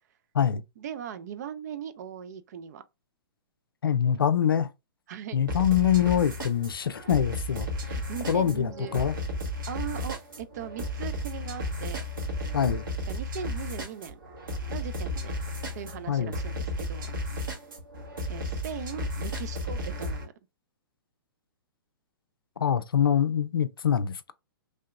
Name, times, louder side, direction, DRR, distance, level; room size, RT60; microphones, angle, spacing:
voice 1, 0.8-2.8 4.1-4.3 5.1-5.4 7.9-9.0 9.7-12.0 13.1-14.2 14.7-15.3 15.7-17.1 18.3-20.3, right 9 dB, 45° right, 0.5 m, -39 dB
voice 2, 3.8-4.7 5.3-7.7 8.3-9.1 12.5-12.9 16.1-16.3 22.6-24.3, left 9 dB, 75° left, 0.4 m, -24 dB
sound 1, 5.5-20.2, left 1 dB, 65° right, 1.2 m, -34 dB
3.2 x 2.8 x 2.2 m
figure-of-eight pair, 115°, 12 cm